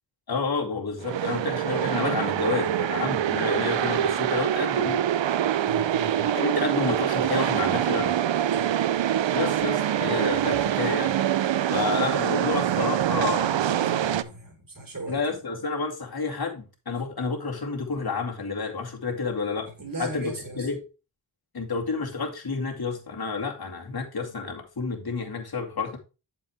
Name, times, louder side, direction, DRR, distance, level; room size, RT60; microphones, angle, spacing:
voice 1, 0.3-5.1 6.3-8.2 9.3-11.2 11.7-13.6 15.1-19.7 20.0-20.8 21.5-26.0, left 4 dB, 45° left, 2.3 m, -30 dB
sound 1, 1.0-14.2, right 11 dB, 65° right, 0.6 m, -25 dB
voice 2, 5.6-6.3 8.5-8.7 13.2-15.4 19.6-20.7, right 2 dB, 40° right, 3.9 m, -38 dB
8.0 x 6.9 x 3.4 m
cardioid pair, 40°, 49 cm